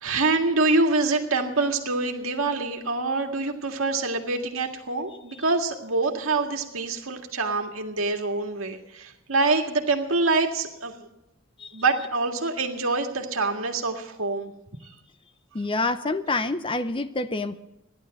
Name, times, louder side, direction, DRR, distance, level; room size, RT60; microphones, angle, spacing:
voice 1, 0.0-10.9 11.7-14.5, right 3 dB, 80° right, 3 dB, 2.0 m, -25 dB
voice 2, 15.5-17.6, left 2 dB, 25° left, 12 dB, 0.7 m, -27 dB
15.5 x 11.5 x 7.7 m, 0.89 s
head